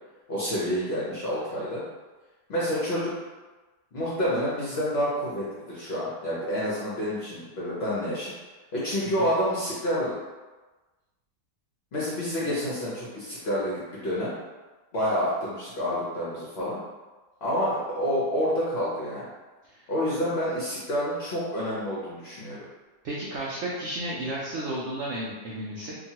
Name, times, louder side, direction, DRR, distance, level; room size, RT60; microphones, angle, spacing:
voice 1, 0.3-1.8 2.5-3.1 3.9-8.3 8.7-10.1 11.9-14.3 14.9-16.8 17.4-19.3 19.9-22.6, equal, 55° left, -8 dB, 0.7 m, -28 dB
voice 2, 23.0-26.0, right 1 dB, 80° right, -6 dB, 0.6 m, -33 dB
2.9 x 2.3 x 2.8 m, 1.2 s
omnidirectional pair, 1.8 m